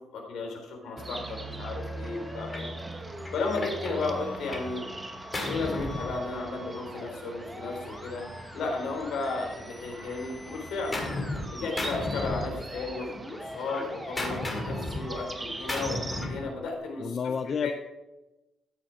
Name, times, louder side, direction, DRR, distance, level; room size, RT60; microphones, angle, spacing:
voice 1, 0.0-2.7 3.3-4.9 5.4-8.2 8.5-11.0 11.5-16.0 16.2-17.2 17.6-17.7, left 3 dB, 70° left, 1 dB, 3.7 m, -34 dB
Musical instrument, 0.8-16.8, equal, ahead, 1.7 m, -46 dB
sound 1, 1.0-16.2, right 2 dB, 15° right, 1.0 m, -42 dB
Gunshot gunfire, 2.5-2.7 3.2-4.8 5.0-6.7 7.7-9.5 9.9-11.5 11.8-13.0 13.3-16.5, left 2 dB, 20° left, 2.2 m, -36 dB
voice 2, 15.9-16.2 17.0-17.7, left 6 dB, 35° left, 11 dB, 0.3 m, -32 dB
13.5 x 7.5 x 4.8 m, 0.98 s
cardioid pair, 165°, 0 cm